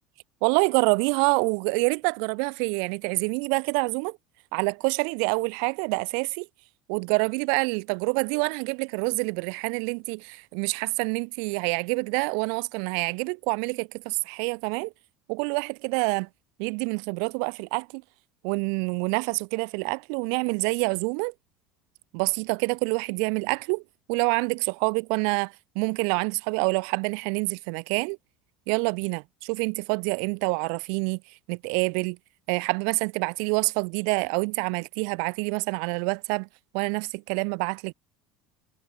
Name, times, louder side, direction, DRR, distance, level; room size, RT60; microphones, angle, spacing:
voice 1, 0.4-4.2 4.5-6.5 6.9-14.9 15.3-16.3 16.6-18.0 18.4-21.3 22.1-23.8 24.1-28.2 28.7-31.2 31.5-32.2 32.5-36.5 36.7-37.9, right 40 dB or more, 70° right, 5.3 m, -27 dB
cardioid pair, 155°, 0 cm